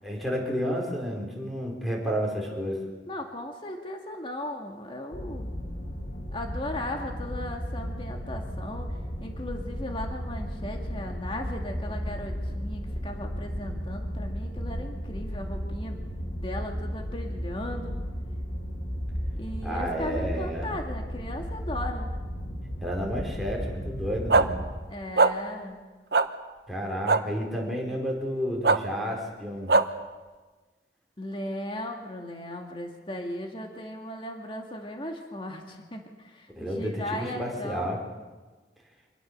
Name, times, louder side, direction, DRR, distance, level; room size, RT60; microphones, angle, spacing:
voice 1, 0.0-2.8 19.6-20.7 22.8-24.5 26.7-29.7 36.5-38.0, equal, ahead, -1 dB, 4.5 m, -31 dB
voice 2, 3.1-5.5 6.3-16.0 16.4-18.0 19.4-22.1 24.9-25.8 31.2-38.0, left 1 dB, 30° left, 2 dB, 2.1 m, -37 dB
sound 1, 5.1-24.7, equal, 60° left, 3.0 m, -34 dB
sound 2, 24.3-24.4 25.2-25.3 26.1-26.2 27.1-27.2 28.6-28.8 29.7-29.8, right 3 dB, 65° right, 0.9 m, -19 dB
26.0 x 19.0 x 6.7 m, 1.3 s
head